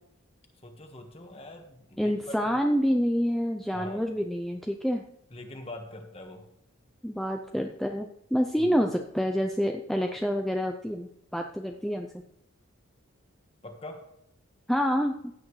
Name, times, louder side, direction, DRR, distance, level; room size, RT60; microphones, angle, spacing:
voice 1, 0.6-2.4 3.7-4.0 5.3-6.5 8.6-8.8 13.6-14.0, left 1 dB, 25° left, 4 dB, 1.4 m, -43 dB
voice 2, 2.0-5.0 7.0-12.1 14.7-15.3, equal, ahead, 3 dB, 0.5 m, -27 dB
15.5 x 8.9 x 3.2 m, 0.75 s
head